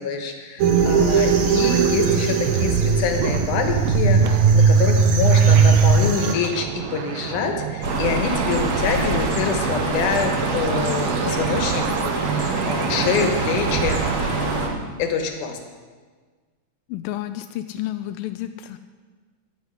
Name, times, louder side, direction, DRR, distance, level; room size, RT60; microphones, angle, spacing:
voice 1, 0.0-14.2 14.4-15.6, left 5 dB, 65° left, 5 dB, 2.5 m, -26 dB
sound 1, 0.6-6.3, right 5 dB, 70° right, 2.9 m, -18 dB
sound 2, 2.5-14.1, right 9 dB, 85° right, 2.7 m, -31 dB
sound 3, 7.8-14.7, right 3 dB, 55° right, 0.8 m, -24 dB
voice 2, 16.9-18.8, left 13 dB, 85° left, 8 dB, 2.0 m, -31 dB
14.0 x 5.7 x 9.7 m, 1.5 s
omnidirectional pair, 4.4 m